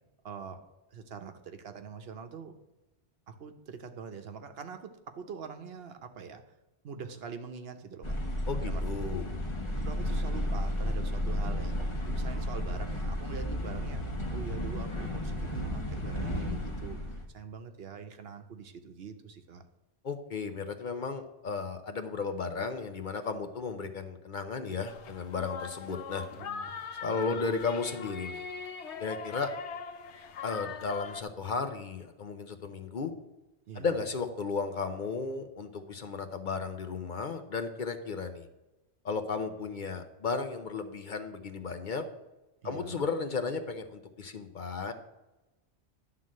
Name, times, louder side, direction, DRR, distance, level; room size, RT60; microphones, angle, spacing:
voice 1, 0.2-0.6 0.9-2.5 3.3-6.5 6.8-8.2 8.6-8.8 9.8-14.0 14.3-17.0 17.3-19.6 26.4-27.4 33.7-34.0 42.6-43.0, right 6 dB, 65° right, 7 dB, 1.0 m, -44 dB
sound 1, 8.0-17.2, left 1 dB, 30° left, 1.0 m, -33 dB
voice 2, 8.5-9.2 20.0-26.2 27.0-28.4 29.0-29.5 30.4-33.1 33.7-38.5 39.0-42.0 42.6-44.9, left 4 dB, 50° left, 7 dB, 0.8 m, -34 dB
sound 2, 24.9-31.2, left 5 dB, 80° left, 1.0 m, -41 dB
11.0 x 3.9 x 7.4 m, 1.1 s
omnidirectional pair, 1.1 m